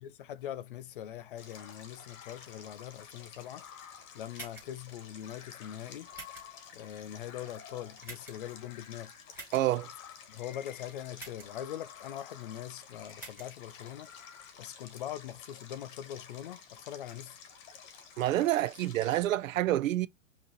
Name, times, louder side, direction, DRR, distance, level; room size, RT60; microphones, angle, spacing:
voice 1, 0.0-3.6 4.1-6.1 6.7-9.1 10.3-14.1 14.6-17.4, left 11 dB, 45° left, 0.4 m, -42 dB
Stream, 1.4-19.2, left 6 dB, 25° left, 1.1 m, -52 dB
sound 1, 1.5-2.8 3.5-4.4 5.1-14.5, left 9 dB, 80° left, 0.9 m, -54 dB
sound 2, 4.3-4.8 6.1-6.6 8.0-8.5 9.3-9.6 11.2-11.6 13.1-13.5, right 3 dB, 5° right, 2.5 m, -46 dB
voice 2, 9.5-9.9 18.2-20.1, right 14 dB, 70° right, 0.5 m, -28 dB
5.3 x 2.9 x 2.9 m
hypercardioid pair, 135°, 41 cm